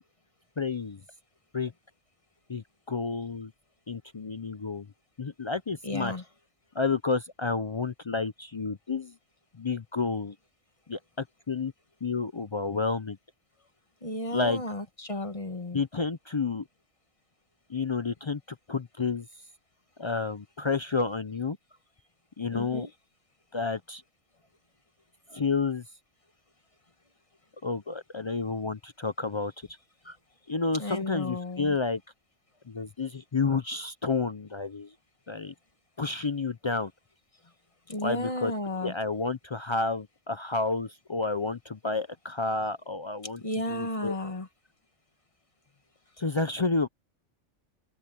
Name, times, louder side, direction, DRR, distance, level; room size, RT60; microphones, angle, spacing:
voice 1, 0.6-1.0 1.5-1.7 2.5-3.5 3.9-4.9 5.2-6.1 6.7-9.2 9.5-10.4 10.9-11.7 12.0-13.2 14.3-14.6 15.7-16.7 17.7-18.4 18.7-19.3 20.0-21.6 22.4-22.9 23.5-24.0 25.3-25.8 27.6-29.5 30.0-30.2 30.5-32.0 32.7-34.9 35.3-35.5 36.0-36.9 38.0-38.5 38.8-43.4 43.7-44.2 46.2-46.9, left 4 dB, 45° left, 0.3 m, -30 dB
voice 2, 5.8-6.2 14.0-15.8 22.5-22.9 30.8-31.8 37.9-38.9 43.4-44.5, left 1 dB, 25° left, 1.5 m, -33 dB
open air
omnidirectional pair, 1.3 m